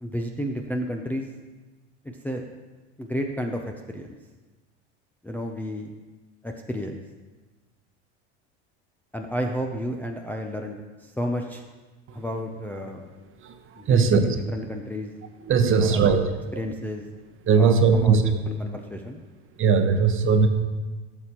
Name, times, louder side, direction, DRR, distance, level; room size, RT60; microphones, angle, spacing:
voice 1, 0.0-1.3 2.0-2.4 3.0-4.2 5.2-5.9 6.4-7.0 9.1-11.6 12.1-13.1 13.8-15.1 15.8-16.2 16.6-17.0 17.6-18.3 18.6-19.2, equal, 5° left, 1 dB, 0.5 m, -31 dB
voice 2, 13.4-14.2 15.4-16.2 16.5-16.8 17.4-18.2 19.6-20.5, right 5 dB, 35° right, 7 dB, 0.9 m, -20 dB
12.5 x 6.8 x 3.0 m, 1.2 s
supercardioid pair, 100°, 35 cm